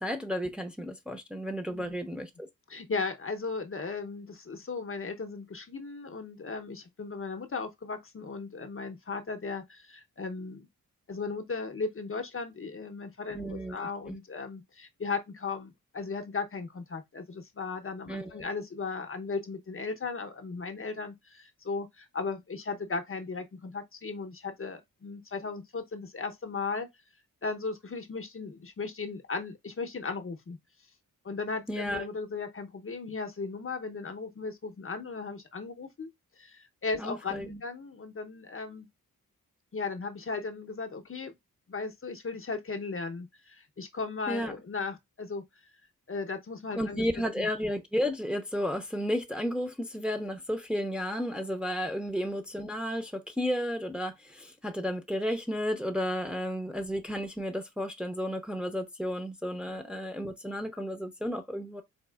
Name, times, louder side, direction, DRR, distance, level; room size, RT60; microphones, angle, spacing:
voice 1, 0.0-2.5 13.3-14.2 18.1-18.3 31.7-32.1 37.0-37.6 44.3-44.5 46.7-61.8, equal, 5° right, 0.6 m, -33 dB
voice 2, 2.7-10.7 11.1-26.9 27.4-30.6 31.2-36.1 36.4-38.9 39.7-41.3 41.7-45.4 46.1-47.0 47.4-47.5, left 4 dB, 35° left, 0.7 m, -36 dB
4.1 x 2.3 x 2.3 m
cardioid pair, 55°, 35 cm